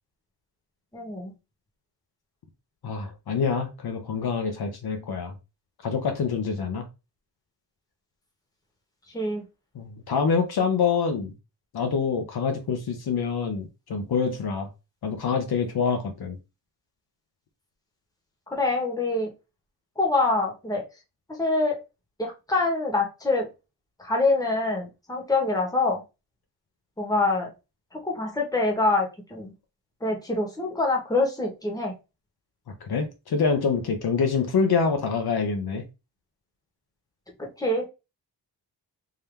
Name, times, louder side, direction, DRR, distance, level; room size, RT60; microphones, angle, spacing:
voice 1, 0.9-1.3 9.1-9.4 18.5-19.3 20.0-20.8 21.3-21.8 22.2-23.5 24.0-26.0 27.0-27.5 27.9-29.5 30.0-31.9 37.4-37.9, left 2 dB, 10° left, 1.2 m, -25 dB
voice 2, 2.8-5.3 5.8-6.8 9.7-11.3 11.7-14.7 15.0-16.4 32.8-35.8, left 5 dB, 60° left, 0.9 m, -26 dB
3.8 x 2.8 x 3.3 m
wide cardioid pair, 145°, 43 cm